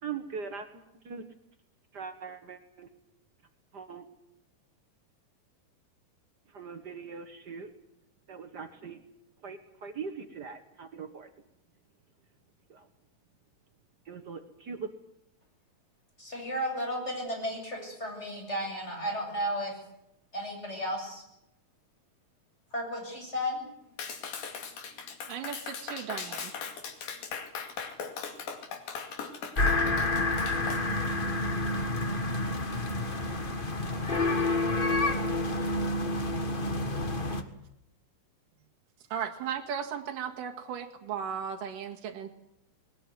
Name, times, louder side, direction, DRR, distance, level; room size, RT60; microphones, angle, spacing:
voice 1, 0.0-1.2 1.9-2.9 3.7-4.0 6.5-7.7 8.3-9.0 9.4-11.3 12.7-12.9 14.0-14.9, right 6 dB, 90° right, 8 dB, 0.9 m, -41 dB
voice 2, 16.2-19.7 20.3-21.2 22.7-23.7, equal, 15° left, 1 dB, 8.3 m, -33 dB
Clapping, 24.0-30.8, left 6 dB, 85° left, 4.2 m, -39 dB
voice 3, 25.3-26.5 39.1-42.3, right 8 dB, 70° right, 3 dB, 3.3 m, -36 dB
sound 1, 29.5-37.4, left 2 dB, 70° left, 0.5 m, -29 dB
21.0 x 19.5 x 9.7 m, 0.81 s
omnidirectional pair, 4.0 m